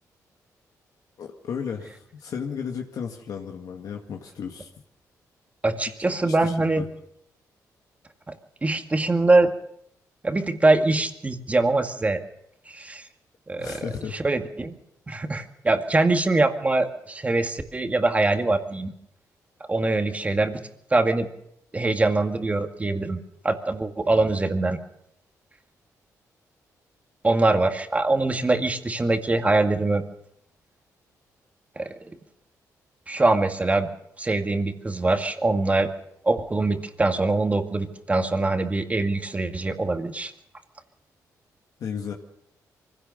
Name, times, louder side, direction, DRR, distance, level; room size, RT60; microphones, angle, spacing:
voice 1, 1.2-4.7 5.9-6.9 13.6-14.2 41.8-42.1, left 7 dB, 70° left, 2 dB, 1.9 m, -34 dB
voice 2, 5.6-6.8 8.3-8.4 8.6-9.5 10.2-12.2 12.7-13.0 13.5-13.8 14.1-14.8 15.1-18.9 19.7-20.6 20.9-21.3 21.7-23.2 23.4-24.8 27.2-30.0 31.8-31.9 33.1-33.9 34.2-35.9 36.2-40.3, right 2 dB, 20° right, 6 dB, 2.0 m, -23 dB
24.0 x 16.5 x 6.6 m, 0.75 s
cardioid pair, 95°, 6 cm